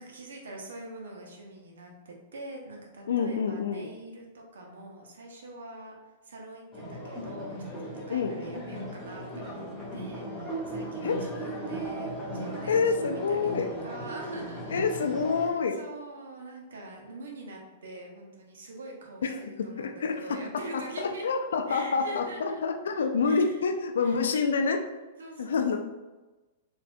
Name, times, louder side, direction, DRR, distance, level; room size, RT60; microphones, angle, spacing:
voice 1, 0.0-5.9 6.2-9.6 9.9-14.9 15.3-21.3 21.7-22.6 22.9-23.6 24.0-24.2 25.2-25.8, right 1 dB, 80° right, 0 dB, 0.8 m, -44 dB
voice 2, 3.1-3.9 8.1-8.4 11.0-11.2 12.7-13.7 14.7-15.8 19.2-24.8 25.4-25.8, left 5 dB, 80° left, 5 dB, 0.4 m, -27 dB
sound 1, 6.7-15.5, right 1 dB, 5° left, 1.4 m, -37 dB
4.2 x 2.6 x 2.3 m, 1.2 s
hypercardioid pair, 115°, 0 cm